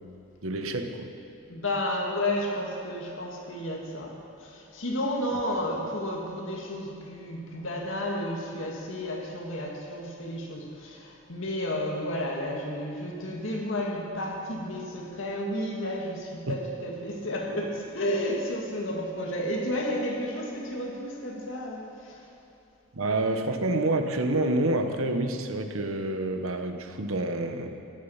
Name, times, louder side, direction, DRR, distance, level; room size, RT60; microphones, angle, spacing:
voice 1, 0.4-1.1 16.5-16.6 22.9-27.7, right 2 dB, 75° right, 6 dB, 1.0 m, -28 dB
voice 2, 1.5-22.3, left 1 dB, 60° left, 0 dB, 2.1 m, -32 dB
16.0 x 10.5 x 5.7 m, 2.9 s
head